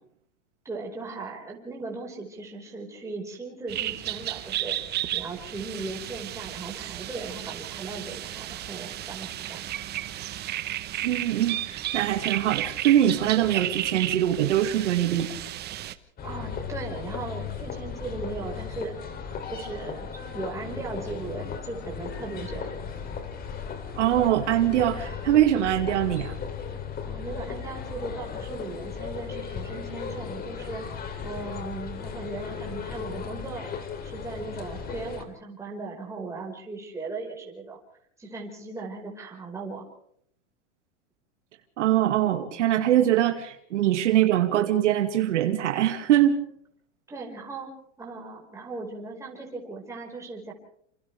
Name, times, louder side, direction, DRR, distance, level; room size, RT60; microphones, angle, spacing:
voice 1, 0.6-4.8 5.1-9.6 16.2-19.0 19.5-22.7 27.0-30.9 31.2-33.7 34.0-37.8 38.2-39.9 47.1-47.7 48.0-50.5, right 3 dB, 10° right, -2 dB, 5.0 m, -38 dB
sound 1, 3.7-15.9, right 13 dB, 30° right, 1.2 m, -33 dB
voice 2, 11.0-15.3 24.0-26.4 41.8-46.3, right 12 dB, 80° right, 5 dB, 2.3 m, -23 dB
sound 2, 16.2-35.2, left 6 dB, 25° left, 3.2 m, -36 dB
28.0 x 27.0 x 3.5 m, 0.68 s
supercardioid pair, 140°, 35 cm